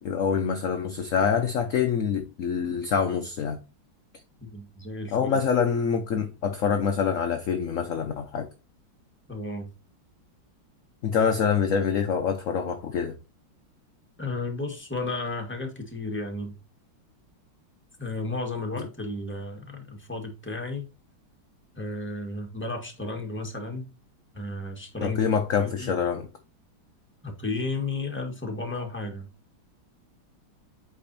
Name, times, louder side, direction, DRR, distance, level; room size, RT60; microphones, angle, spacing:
voice 1, 0.0-3.6 5.1-8.5 11.0-13.1 25.0-26.3, left 6 dB, 60° left, 0.8 m, -25 dB
voice 2, 4.4-5.4 9.3-9.7 14.2-16.5 18.0-20.9 21.8-23.9 24.3-25.2 25.6-25.9 27.2-29.3, left 2 dB, 5° left, 1.4 m, -33 dB
8.5 x 5.1 x 2.7 m
omnidirectional pair, 2.3 m